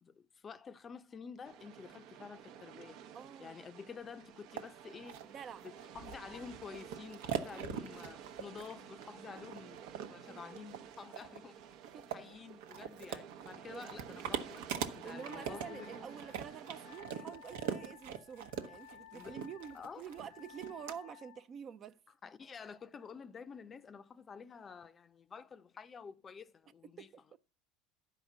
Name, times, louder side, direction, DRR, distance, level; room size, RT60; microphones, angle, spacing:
voice 1, 0.0-3.0 3.4-5.2 5.6-9.8 10.1-11.8 12.1-16.1 19.1-19.4 19.7-20.1 22.2-27.1, left 6 dB, 30° left, 0.6 m, -50 dB
sound 1, 1.4-17.0, right 8 dB, 65° right, 0.8 m, -52 dB
voice 2, 3.1-3.7 5.2-5.7 7.5-7.6 10.2-10.6 11.9-12.1 13.7-13.9 15.0-22.0 27.0-27.2, right 8 dB, 40° right, 0.6 m, -48 dB
sound 2, 4.6-4.7 5.1-21.0, right 8 dB, 85° right, 1.0 m, -42 dB
Wind instrument woodwind instrument, 15.1-21.5, left 12 dB, 85° left, 0.8 m, -56 dB
11.5 x 5.0 x 7.3 m
supercardioid pair, 110°, 0 cm